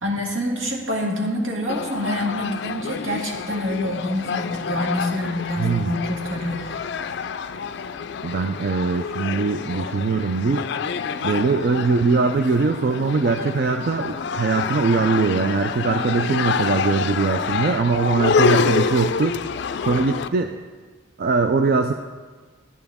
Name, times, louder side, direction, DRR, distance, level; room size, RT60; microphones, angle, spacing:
voice 1, 0.0-7.0, left 1 dB, 75° right, -1 dB, 1.8 m, -26 dB
sound 1, 1.7-20.3, left 5 dB, 55° left, 0.3 m, -27 dB
voice 2, 5.6-6.0 8.2-10.6 11.2-19.4 19.8-20.5 21.2-21.9, right 4 dB, 50° right, 6 dB, 0.3 m, -21 dB
10.5 x 9.1 x 3.5 m, 1.4 s
head